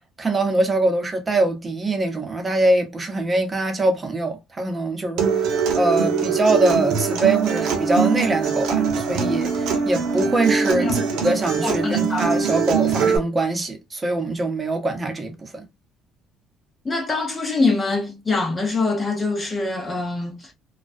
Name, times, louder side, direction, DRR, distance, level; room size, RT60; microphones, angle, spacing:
voice 1, 0.2-15.7, right 2 dB, 25° right, 0.8 m, -23 dB
Acoustic guitar, 5.2-13.2, right 5 dB, 75° right, 0.7 m, -22 dB
voice 2, 11.6-12.3 16.8-20.5, left 3 dB, 25° left, 0.7 m, -24 dB
2.3 x 2.2 x 2.4 m
supercardioid pair, 95°, 0 cm